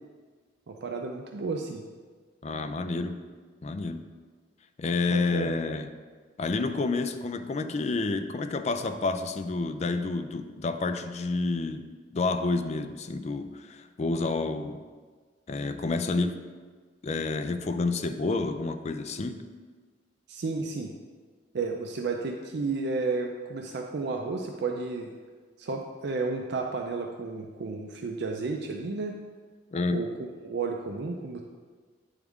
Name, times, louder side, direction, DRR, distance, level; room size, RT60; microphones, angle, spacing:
voice 1, 0.7-1.9 5.1-5.5 20.3-20.9 21.5-25.1 25.6-29.1 29.9-31.4, right 4 dB, 60° right, 2 dB, 0.4 m, -32 dB
voice 2, 2.4-3.2 3.6-4.0 4.8-5.9 6.4-11.8 12.1-14.8 15.5-16.4 17.0-19.5 29.7-30.0, left 3 dB, 35° left, 8 dB, 0.4 m, -29 dB
9.3 x 3.6 x 3.5 m, 1.5 s
head